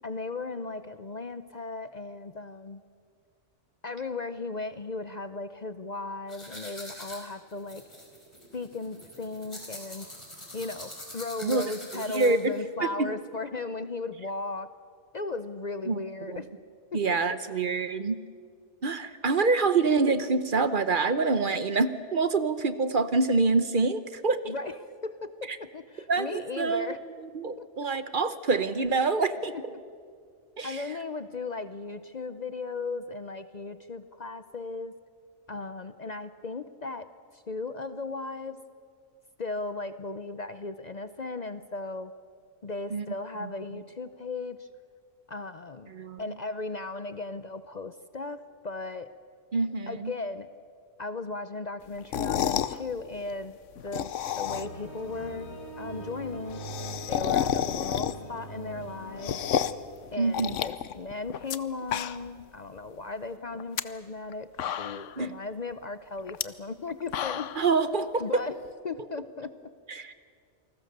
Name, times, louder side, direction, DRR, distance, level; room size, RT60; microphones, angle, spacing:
voice 1, 0.0-2.8 3.8-7.8 8.5-10.1 10.5-14.7 15.1-16.5 16.9-17.0 24.4-27.0 27.6-27.7 29.5-29.8 30.6-34.9 35.5-38.6 39.4-42.1 42.6-44.7 45.3-45.9 46.2-49.1 49.9-50.5 51.0-53.6 53.8-55.5 55.8-56.6 57.1-59.4 60.1-67.5 68.2-68.6 68.8-69.7, left 3 dB, 45° left, 11 dB, 0.7 m, -36 dB
sound 1, 6.3-12.6, left 1 dB, 25° left, 4.5 m, -44 dB
voice 2, 11.9-12.5 13.0-13.1 15.9-16.0 16.3-16.4 16.9-18.2 18.8-24.5 25.5-25.6 26.1-26.9 27.3-29.5 30.6-30.8 42.9-43.1 43.4-43.5 45.9-46.2 49.5-50.1 60.2-60.5 65.2-65.3 67.6-68.4 69.9-70.1, right 4 dB, 50° right, 12 dB, 1.0 m, -26 dB
sound 2, 52.0-52.8 53.8-54.9 55.2-55.3 55.5-55.6 55.8-55.9 56.2-58.4 58.8-59.9 60.3-61.6 61.8-62.4 62.8-62.9 63.5-63.8 64.3-64.4 64.6-65.2 66.3-66.4 66.9-67.7, left 10 dB, 85° left, 1.1 m, -30 dB
sound 3, 54.4-60.6 60.9-61.0, right 1 dB, 65° left, 3.1 m, -42 dB
28.0 x 20.0 x 6.7 m, 2.1 s
omnidirectional pair, 1.2 m